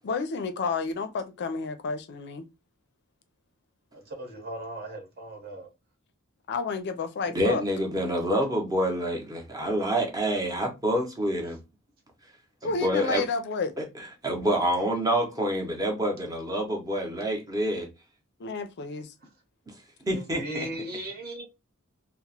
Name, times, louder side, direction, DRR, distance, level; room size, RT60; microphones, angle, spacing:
voice 1, 0.0-2.4 6.5-7.6 12.6-13.7 18.4-19.1, left 4 dB, 50° left, 0.4 m, -30 dB
voice 2, 4.2-5.7 20.0-21.4, right 1 dB, 45° right, 1.0 m, -37 dB
voice 3, 7.3-11.6 12.6-13.2 13.8-17.9 19.7-19.8 20.1-20.7, equal, 15° right, 0.7 m, -27 dB
2.9 x 2.0 x 2.7 m
head